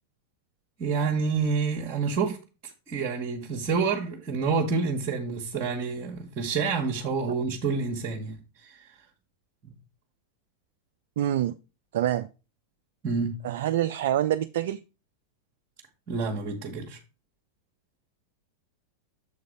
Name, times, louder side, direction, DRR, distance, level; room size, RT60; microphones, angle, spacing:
voice 1, 0.8-2.4 2.6-8.9 13.0-13.4 16.1-17.0, right 5 dB, 30° right, 1.2 m, -28 dB
voice 2, 11.2-11.5 11.9-12.3 13.4-14.8, right 12 dB, 55° right, 0.3 m, -26 dB
7.0 x 4.0 x 5.0 m
figure-of-eight pair, 90°, 0 cm